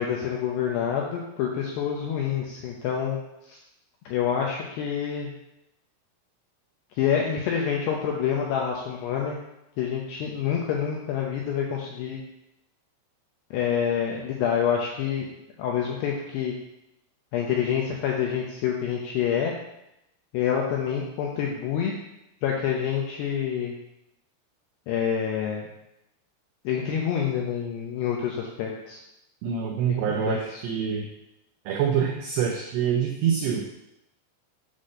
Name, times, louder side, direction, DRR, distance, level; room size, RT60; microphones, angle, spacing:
voice 1, 0.0-3.2 3.5-3.6 4.1-5.3 7.0-9.4 9.8-12.2 13.5-15.3 15.6-16.5 17.3-19.5 20.3-21.9 22.4-23.8 24.9-25.6 26.6-29.0 29.9-30.4, left 8 dB, 80° left, -1 dB, 2.4 m, -27 dB
voice 2, 29.4-31.1 31.7-33.6, right 8 dB, 90° right, 1 dB, 2.4 m, -26 dB
8.1 x 4.2 x 6.3 m, 0.87 s
omnidirectional pair, 5.8 m